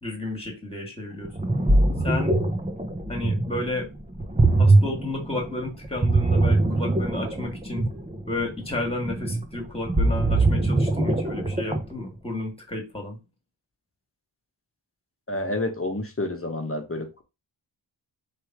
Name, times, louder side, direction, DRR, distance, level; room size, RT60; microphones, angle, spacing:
voice 1, 0.0-1.3 2.0-2.3 3.1-3.9 4.6-7.8 8.3-13.2, left 2 dB, 10° left, 2 dB, 1.9 m, -32 dB
Ocean, 1.2-12.0, right 2 dB, 15° right, 0.7 m, -22 dB
voice 2, 15.3-17.2, left 2 dB, 30° left, 5 dB, 1.1 m, -29 dB
3.5 x 3.1 x 4.6 m, 0.27 s
wide cardioid pair, 70°, 47 cm